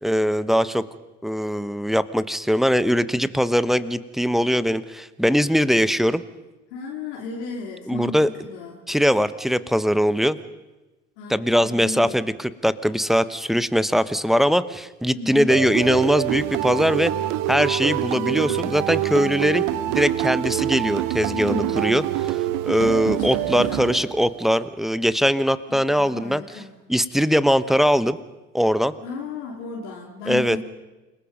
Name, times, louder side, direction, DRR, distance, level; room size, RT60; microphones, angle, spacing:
voice 1, 0.0-0.8 1.2-6.2 7.9-8.3 8.9-10.4 11.3-17.1 17.5-22.4 22.6-26.4 26.9-28.2 28.5-28.9 30.3-30.6, equal, ahead, 15 dB, 1.1 m, -21 dB
voice 2, 6.7-8.8 11.2-12.3 15.1-15.5 18.1-18.5 21.3-22.1 23.1-24.1 25.7-26.8 29.0-30.6, left 3 dB, 75° left, -1 dB, 3.1 m, -34 dB
sound 1, 15.5-24.4, right 13 dB, 65° right, 1.2 m, -25 dB
29.0 x 19.5 x 5.4 m, 1.1 s
hypercardioid pair, 60°, 35 cm